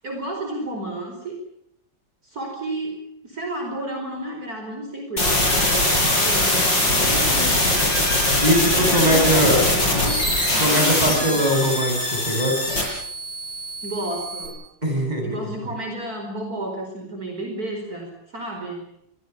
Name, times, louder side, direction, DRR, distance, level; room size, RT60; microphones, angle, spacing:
voice 1, 0.0-1.4 2.2-3.0 3.2-5.9 6.2-6.5 6.8-7.9 8.8-10.2 10.5-11.5 13.8-14.6 15.2-18.8, right 1 dB, 50° right, 2 dB, 5.4 m, -31 dB
sound 1, 5.2-14.5, left 1 dB, 75° left, 8.9 m, -21 dB
voice 2, 8.4-9.6 10.6-12.8 14.8-15.5, equal, 20° right, 3 dB, 7.8 m, -21 dB
26.5 x 23.5 x 7.1 m, 0.76 s
omnidirectional pair, 2.0 m